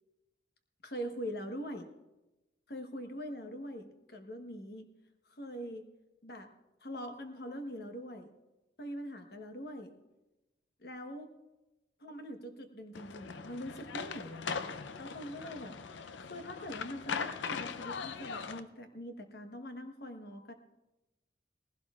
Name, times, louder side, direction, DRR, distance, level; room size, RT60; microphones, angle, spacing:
voice 1, 0.8-1.9 2.7-4.9 5.2-5.8 6.2-6.5 6.8-8.3 8.8-9.9 10.8-11.3 12.0-15.8 16.2-20.5, equal, 55° left, 5 dB, 1.2 m, -43 dB
sound 1, 12.9-18.6, left 5 dB, 80° left, 0.6 m, -40 dB
19.0 x 16.0 x 2.4 m, 1.0 s
head